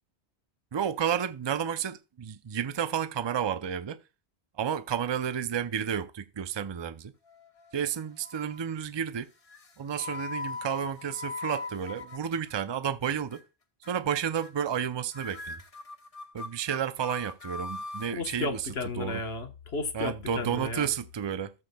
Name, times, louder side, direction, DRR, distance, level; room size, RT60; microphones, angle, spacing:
voice 1, 0.7-4.0 4.6-7.1 7.7-9.3 9.8-13.4 13.9-15.6 16.3-18.6 19.0-19.2 19.9-21.5, right 8 dB, 35° right, 0.4 m, -31 dB
sound 1, 7.3-7.8 8.2-8.7 9.5-12.8 13.1-13.4 13.8-14.2 14.4-14.9 15.1-18.1, left 3 dB, 35° left, 0.8 m, -41 dB
voice 2, 18.1-20.9, left 3 dB, 65° left, 1.5 m, -33 dB
13.5 x 7.3 x 2.3 m
omnidirectional pair, 1.1 m